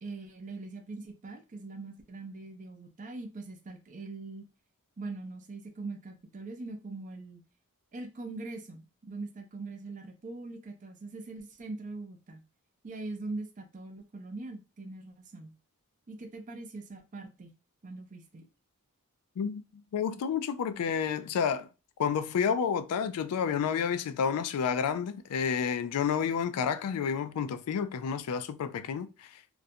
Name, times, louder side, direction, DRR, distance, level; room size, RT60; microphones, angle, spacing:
voice 1, 0.0-4.4 5.0-7.4 7.9-12.4 12.8-15.5 16.1-17.6 17.8-18.5, right 3 dB, 35° right, 0.5 m, -42 dB
voice 2, 19.9-21.7 22.0-29.3, left 7 dB, 75° left, 0.3 m, -30 dB
2.4 x 2.1 x 2.6 m
head